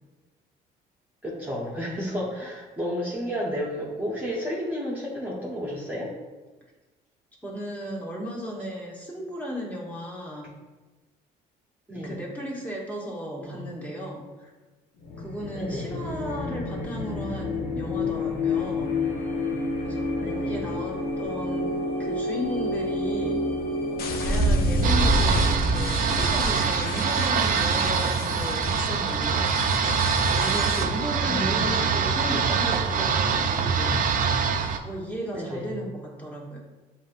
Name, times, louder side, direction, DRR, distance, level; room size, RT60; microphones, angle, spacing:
voice 1, 1.2-6.1 11.9-12.2 13.4-13.6 15.5-15.9 20.2-20.6 24.9-25.2 31.1-31.7 35.3-35.7, equal, 10° right, -6 dB, 0.9 m, -32 dB
voice 2, 7.4-10.5 12.0-14.5 15.2-18.9 19.8-20.1 20.3-23.4 23.9-29.8 30.2-34.4 34.7-36.6, equal, 10° left, -4 dB, 1.2 m, -35 dB
sound 1, 15.0-28.5, equal, 85° left, 0.9 m, -28 dB
sound 2, 24.0-30.8, left 4 dB, 60° left, 0.6 m, -35 dB
sound 3, 24.8-34.8, right 5 dB, 55° right, 0.5 m, -24 dB
7.3 x 2.7 x 2.5 m, 1.2 s
cardioid pair, 110°, 17 cm